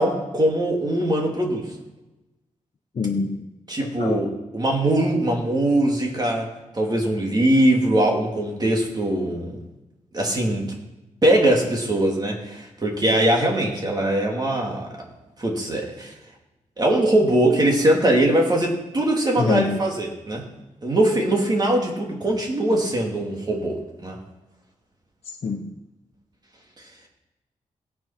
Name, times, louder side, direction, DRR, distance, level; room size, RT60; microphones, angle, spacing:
voice 1, 0.0-1.7 3.7-6.5 6.7-9.6 10.1-10.7 11.2-14.9 15.4-16.1 16.8-20.4 20.8-24.2, right 1 dB, 30° right, 0 dB, 2.9 m, -21 dB
voice 2, 2.9-3.5 3.8-4.2 19.4-19.8 25.2-25.7, left 4 dB, 50° left, 0 dB, 1.1 m, -25 dB
18.0 x 7.5 x 6.0 m, 1.0 s
wide cardioid pair, 135°, 13 cm